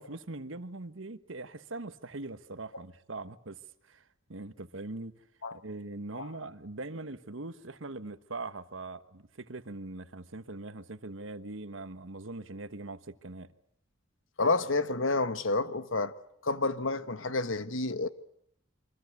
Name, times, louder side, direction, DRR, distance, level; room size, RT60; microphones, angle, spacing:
voice 1, 0.0-5.2 5.5-13.5, right 2 dB, 70° right, 1.3 m, -42 dB
voice 2, 14.4-16.1 16.4-18.1, left 3 dB, 70° left, 1.3 m, -29 dB
28.5 x 24.0 x 8.3 m
head